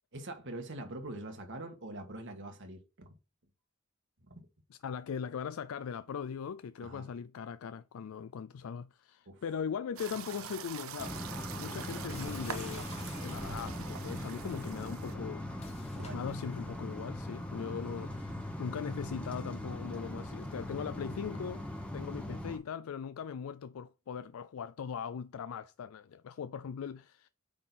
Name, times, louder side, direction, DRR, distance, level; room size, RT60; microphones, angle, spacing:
voice 1, 0.1-3.2 4.2-4.5 6.8-7.1 9.2-9.4 15.9-16.2 17.5-17.8 18.1-18.4 22.1-22.2, right 1 dB, 60° right, 1.6 m, -44 dB
voice 2, 4.8-11.2 11.6-18.3 18.6-27.3, left 7 dB, 80° left, 0.4 m, -40 dB
sound 1, 10.0-15.1, right 7 dB, 75° right, 0.7 m, -44 dB
sound 2, 11.0-22.6, left 1 dB, 5° left, 1.2 m, -40 dB
sound 3, 12.1-13.8 15.5-16.7, left 4 dB, 30° left, 1.2 m, -52 dB
8.6 x 3.8 x 4.1 m
head